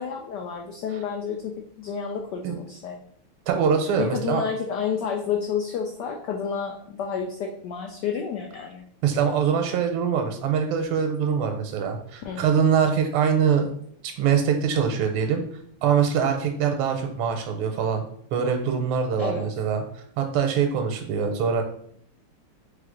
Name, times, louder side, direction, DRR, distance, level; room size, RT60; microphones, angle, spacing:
voice 1, 0.0-1.5 1.8-3.0 4.0-8.8 12.2-12.4 19.2-19.5, left 7 dB, 90° left, 2 dB, 0.9 m, -30 dB
voice 2, 3.5-4.4 9.0-13.7 14.0-15.4 15.8-18.0 18.3-19.8 20.2-21.6, right 7 dB, 85° right, 4 dB, 1.5 m, -23 dB
3.7 x 3.3 x 3.7 m, 0.65 s
omnidirectional pair, 2.4 m